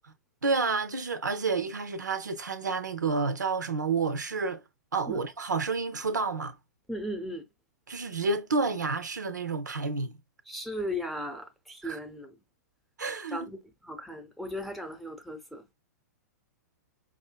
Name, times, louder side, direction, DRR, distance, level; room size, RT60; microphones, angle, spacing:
voice 1, 0.4-4.6 4.9-6.5 7.9-10.2 11.8-12.0 13.0-13.5, right 4 dB, 85° right, 0.6 m, -30 dB
voice 2, 6.9-7.4 10.5-12.3 13.3-15.6, equal, ahead, 0.7 m, -36 dB
4.9 x 2.6 x 2.3 m
hypercardioid pair, 115°, 9 cm